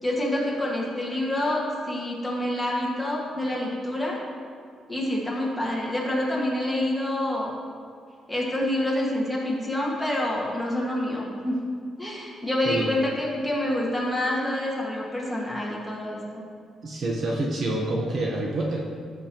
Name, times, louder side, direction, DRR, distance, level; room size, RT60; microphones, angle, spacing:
voice 1, 0.0-4.2 4.9-7.5 8.3-11.5 12.0-16.4, left 1 dB, 5° left, -5 dB, 1.8 m, -27 dB
voice 2, 16.8-18.8, right 2 dB, 45° right, -1 dB, 1.0 m, -27 dB
13.5 x 7.2 x 3.0 m, 2.3 s
cardioid pair, 135°, 0 cm